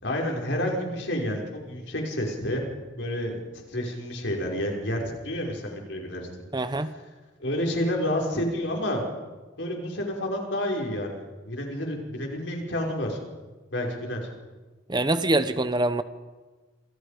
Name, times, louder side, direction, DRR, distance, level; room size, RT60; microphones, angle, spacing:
voice 1, 0.0-2.6 3.0-6.3 7.4-9.0 9.6-13.2 13.7-14.3, left 1 dB, 65° left, 0 dB, 5.7 m, -29 dB
voice 2, 6.5-6.9 14.9-16.0, right 2 dB, 25° right, 11 dB, 0.9 m, -24 dB
28.5 x 26.5 x 5.2 m, 1.3 s
head